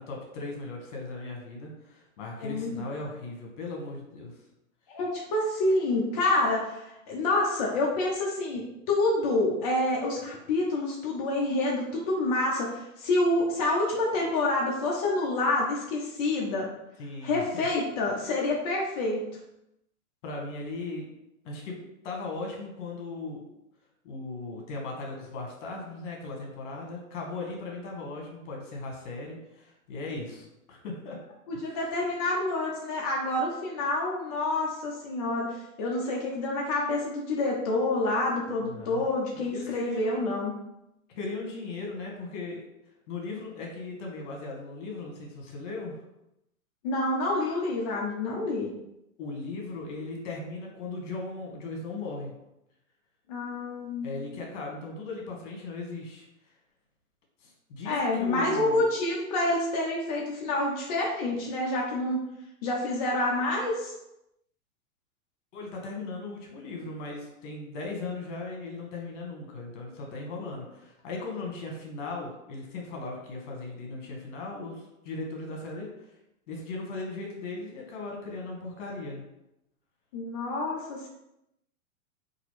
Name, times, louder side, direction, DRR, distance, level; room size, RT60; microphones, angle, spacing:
voice 1, 0.0-4.3 17.0-17.7 20.2-21.1 21.4-21.8 22.0-23.5 24.0-31.2 31.6-31.8 38.6-39.1 39.4-40.2 41.1-42.6 43.1-46.0 49.2-52.3 54.0-56.3 57.4-58.9 65.5-76.1 76.5-79.2, left 3 dB, 55° left, 0 dB, 1.2 m, -38 dB
voice 2, 2.4-2.9 4.9-16.7 17.2-19.2 31.5-40.5 46.8-48.7 53.3-54.2 57.8-62.2 62.6-63.9 80.1-81.1, left 2 dB, 30° left, -3 dB, 0.3 m, -28 dB
3.0 x 2.5 x 3.0 m, 0.86 s
hypercardioid pair, 130°, 43 cm